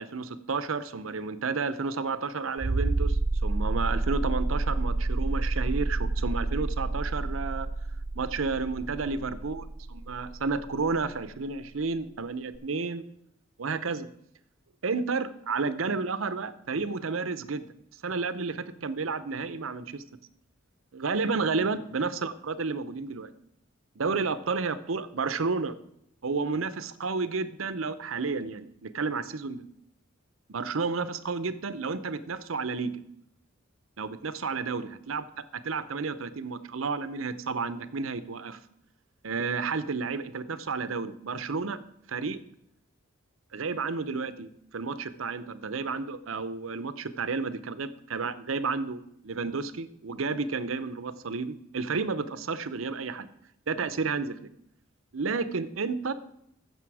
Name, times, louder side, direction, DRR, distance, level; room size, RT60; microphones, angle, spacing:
voice 1, 0.0-7.7 8.1-13.0 13.6-14.1 14.8-17.7 18.0-20.0 20.9-23.3 24.0-25.8 26.2-29.6 30.5-32.9 34.0-38.6 39.2-41.8 42.1-42.4 43.5-53.3 53.7-54.5 55.1-56.1, right 4 dB, 85° right, 13 dB, 0.7 m, -31 dB
sound 1, 2.6-11.0 12.5-12.6, right 2 dB, 35° right, 0.5 m, -29 dB
15.0 x 6.8 x 4.8 m, 0.75 s
head